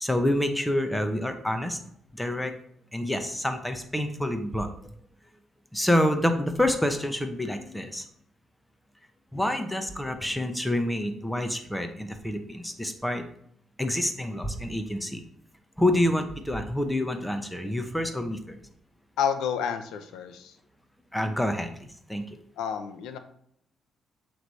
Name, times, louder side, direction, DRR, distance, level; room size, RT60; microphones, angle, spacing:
voice 1, 0.0-1.8 2.1-2.5 2.9-4.7 5.7-8.0 9.3-13.2 13.8-15.2 15.8-18.6 21.1-21.7 22.1-22.4, left 1 dB, 5° left, 6 dB, 0.9 m, -27 dB
voice 2, 19.2-20.5 22.6-23.2, left 8 dB, 85° left, 7 dB, 0.6 m, -30 dB
7.8 x 3.2 x 4.1 m, 0.70 s
cardioid pair, 90°, 0 cm